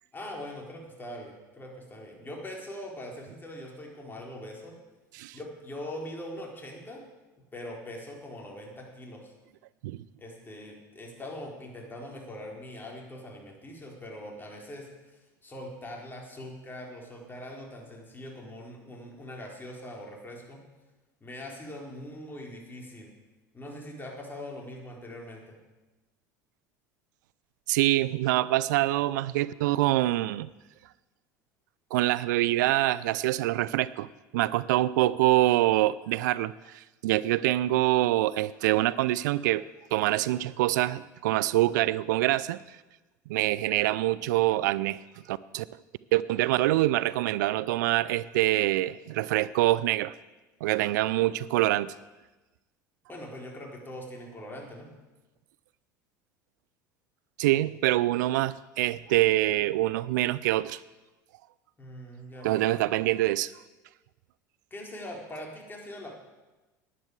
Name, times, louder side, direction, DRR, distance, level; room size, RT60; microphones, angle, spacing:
voice 1, 0.1-4.7 5.3-7.0 7.5-9.3 10.2-14.9 15.4-20.6 21.2-23.1 23.5-25.6 53.1-54.9 61.8-62.7 64.7-66.1, left 1 dB, 20° left, -1 dB, 4.3 m, -42 dB
voice 2, 27.7-30.5 31.9-39.6 39.9-42.6 43.3-45.0 45.3-45.6 46.1-50.1 50.6-51.9 57.4-60.8 62.4-63.5, right 16 dB, 70° right, 18 dB, 0.4 m, -25 dB
11.0 x 10.0 x 8.1 m, 1.1 s
hypercardioid pair, 75°, 10 cm